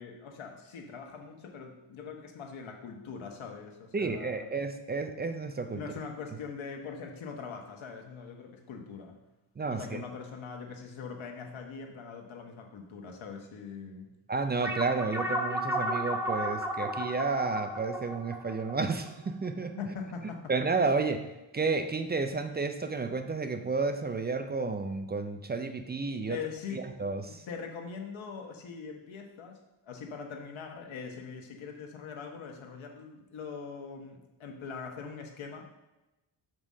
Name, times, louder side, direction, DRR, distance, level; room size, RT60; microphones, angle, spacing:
voice 1, 0.0-4.5 5.7-9.2 9.7-14.1 19.8-20.5 26.3-26.8 27.5-29.6 29.8-35.6, left 5 dB, 70° left, 2 dB, 1.3 m, -42 dB
voice 2, 3.9-5.8 9.6-10.0 14.3-19.8 20.5-26.4 26.7-27.5, right 4 dB, 25° right, 8 dB, 0.3 m, -31 dB
sound 1, 14.6-19.5, equal, 5° right, 0.7 m, -33 dB
6.2 x 5.2 x 5.5 m, 0.99 s
wide cardioid pair, 150°, 49 cm